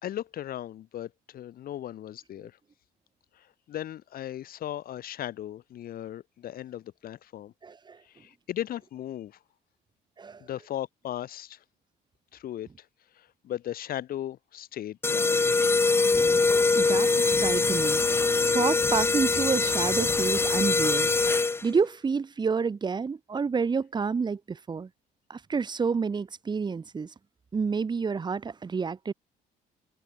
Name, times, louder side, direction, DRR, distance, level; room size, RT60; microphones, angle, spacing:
voice 1, 0.0-2.5 3.3-7.5 8.0-9.4 10.4-11.6 12.3-12.9 13.1-15.3, left 12 dB, 60° left, 2.5 m, -37 dB
voice 2, 7.6-8.0 10.2-10.4 16.7-21.1 21.6-24.9 25.3-27.1 27.5-29.1, right 5 dB, 25° right, 1.5 m, -29 dB
sound 1, 15.0-21.8, left 3 dB, 15° left, 0.6 m, -23 dB
cardioid pair, 110°, 17 cm